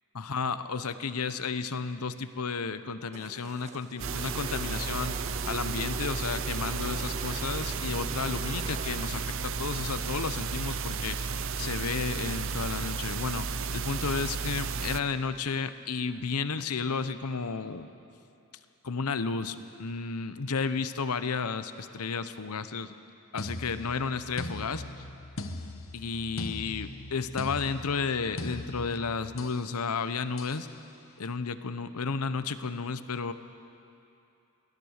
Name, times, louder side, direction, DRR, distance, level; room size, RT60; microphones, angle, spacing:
voice 1, 0.2-5.2 5.5-13.5 13.7-17.9 18.8-22.9 23.3-24.8 25.9-30.7 31.2-33.3, left 5 dB, 85° left, 12 dB, 0.8 m, -32 dB
sound 1, 3.1-11.4, right 2 dB, 30° right, 0.9 m, -44 dB
sound 2, 4.0-15.0, right 5 dB, 60° right, 0.7 m, -33 dB
sound 3, 23.4-29.7 30.4-30.7, left 2 dB, 60° left, 1.2 m, -40 dB
23.0 x 17.0 x 6.6 m, 2.7 s
head